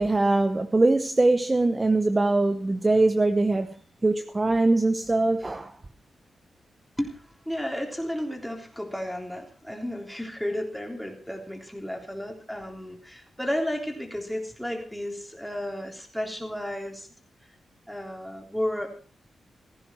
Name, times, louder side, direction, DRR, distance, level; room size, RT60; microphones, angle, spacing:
voice 1, 0.0-3.7 4.0-5.7, right 2 dB, 20° right, 0.9 m, -22 dB
voice 2, 7.0-17.1 17.4-17.5 17.9-18.9, equal, ahead, 3.5 m, -33 dB
16.5 x 14.5 x 4.5 m
wide cardioid pair, 125°, 0 cm